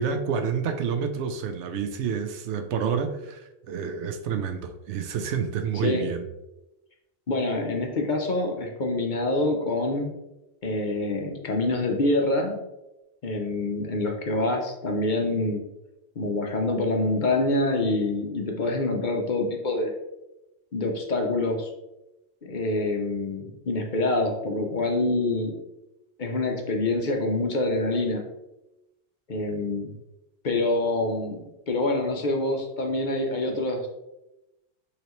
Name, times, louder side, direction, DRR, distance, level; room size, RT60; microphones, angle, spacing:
voice 1, 0.0-6.3, right 6 dB, 85° right, 7 dB, 0.9 m, -29 dB
voice 2, 7.3-10.1 10.6-12.7 13.2-15.6 16.2-19.9 20.7-21.7 22.4-25.6 26.2-28.3 29.3-29.9 30.4-33.9, left 2 dB, 50° left, 2 dB, 0.7 m, -26 dB
5.7 x 3.1 x 3.0 m, 0.95 s
omnidirectional pair, 1.2 m